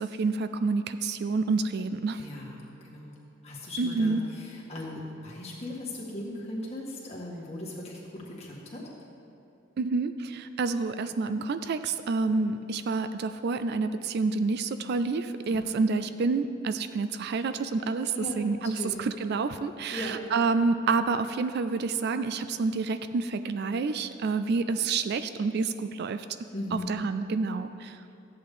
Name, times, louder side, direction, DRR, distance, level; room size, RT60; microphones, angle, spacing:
voice 1, 0.0-2.2 3.8-4.2 9.8-26.3 26.9-27.9, right 4 dB, 55° right, 11 dB, 0.3 m, -28 dB
voice 2, 2.2-3.2 3.4-8.8 15.5-15.8 18.1-19.0 19.9-20.2 26.5-26.9, left 1 dB, 30° left, -4 dB, 1.9 m, -38 dB
13.5 x 8.5 x 3.8 m, 2.8 s
head